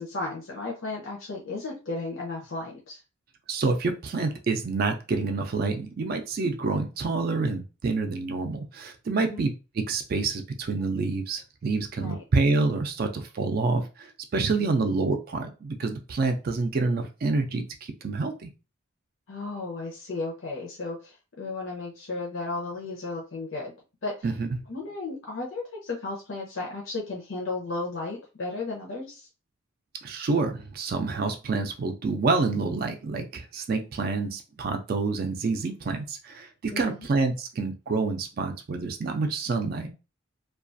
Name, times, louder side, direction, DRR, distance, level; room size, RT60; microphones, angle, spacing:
voice 1, 0.0-3.0 9.2-9.5 12.0-12.2 14.6-14.9 19.3-23.7 24.0-24.2 24.7-29.3 36.7-37.1, left 3 dB, 75° left, -3 dB, 0.7 m, -34 dB
voice 2, 3.5-9.5 9.9-18.5 24.2-24.5 30.0-39.9, right 3 dB, 45° right, 6 dB, 0.4 m, -27 dB
2.3 x 2.3 x 2.5 m, 0.30 s
head